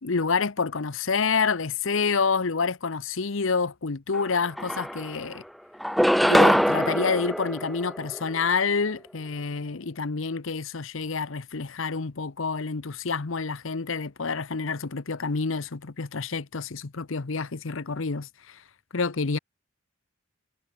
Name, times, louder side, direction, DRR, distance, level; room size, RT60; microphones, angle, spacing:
voice 1, 0.0-5.4 6.2-18.6 18.9-19.4, left 4 dB, 65° left, 0.9 m, -28 dB
sound 1, 4.1-4.2 4.6-5.3 5.8-8.4, equal, ahead, 0.5 m, -23 dB
head